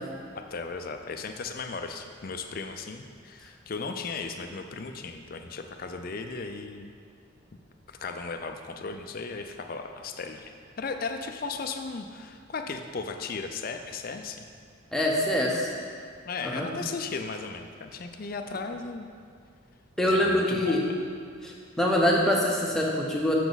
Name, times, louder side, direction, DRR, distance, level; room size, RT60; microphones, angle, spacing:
voice 1, 0.3-6.9 7.9-14.5 16.3-19.1 20.0-20.8, left 4 dB, 45° left, 6 dB, 0.4 m, -36 dB
voice 2, 14.9-15.7 16.4-16.7 20.0-20.8 21.4-23.3, left 1 dB, ahead, -3 dB, 0.8 m, -24 dB
7.0 x 6.8 x 4.0 m, 2.2 s
head